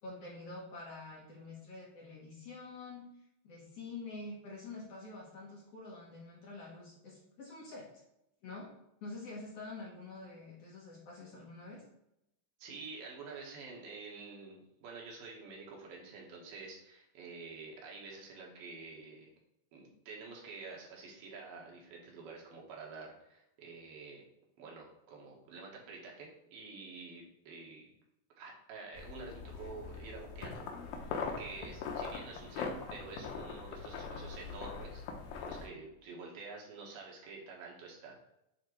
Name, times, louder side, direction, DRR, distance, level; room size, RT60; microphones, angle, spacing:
voice 1, 0.0-3.1 3.4-7.9 8.4-8.7 9.0-11.8, left 3 dB, 60° left, -4 dB, 1.8 m, -47 dB
voice 2, 12.6-19.3 19.7-24.2 24.6-27.9 28.4-31.1 31.4-35.0 35.4-38.2, right 4 dB, 85° right, -1 dB, 3.0 m, -48 dB
sound 1, 29.0-35.7, left 5 dB, 85° left, 2.6 m, -41 dB
8.7 x 3.5 x 3.1 m, 0.83 s
omnidirectional pair, 3.9 m